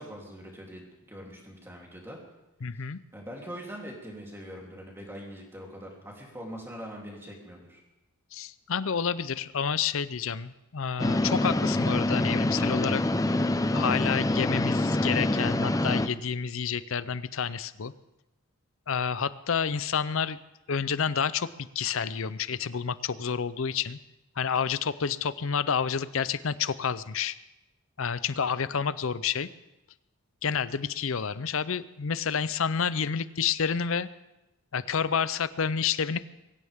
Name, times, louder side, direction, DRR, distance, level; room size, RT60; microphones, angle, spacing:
voice 1, 0.0-2.2 3.1-7.8, equal, 10° right, -2 dB, 3.2 m, -42 dB
voice 2, 2.6-3.0 8.3-13.0 13.7-17.9 18.9-20.4 20.7-24.0 24.4-27.4 28.0-29.5 30.4-34.1 34.7-36.2, left 6 dB, 65° left, 16 dB, 0.6 m, -29 dB
sound 1, 11.0-16.1, left 1 dB, 15° left, 0.5 m, -26 dB
23.0 x 16.0 x 3.6 m, 0.97 s
head